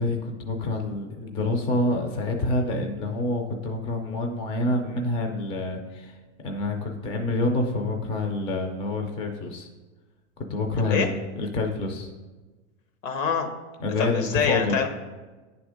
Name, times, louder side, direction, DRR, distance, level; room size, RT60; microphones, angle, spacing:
voice 1, 0.0-6.2 6.4-9.7 10.5-12.1 13.8-14.8, left 2 dB, 15° left, 4 dB, 0.3 m, -27 dB
voice 2, 13.0-13.5 14.0-14.9, left 6 dB, 85° left, 6 dB, 1.2 m, -25 dB
9.2 x 3.5 x 4.9 m, 1.3 s
supercardioid pair, 145°, 38 cm